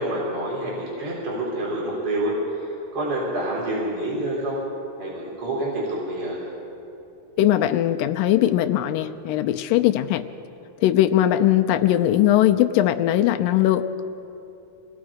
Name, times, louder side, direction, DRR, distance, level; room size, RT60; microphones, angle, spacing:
voice 1, 0.0-4.6 5.0-6.4, right 1 dB, 40° right, -5 dB, 5.1 m, -27 dB
voice 2, 7.4-10.2 10.8-14.0, left 12 dB, 80° left, 7 dB, 2.3 m, -20 dB
26.5 x 19.5 x 5.0 m, 2.9 s
omnidirectional pair, 4.2 m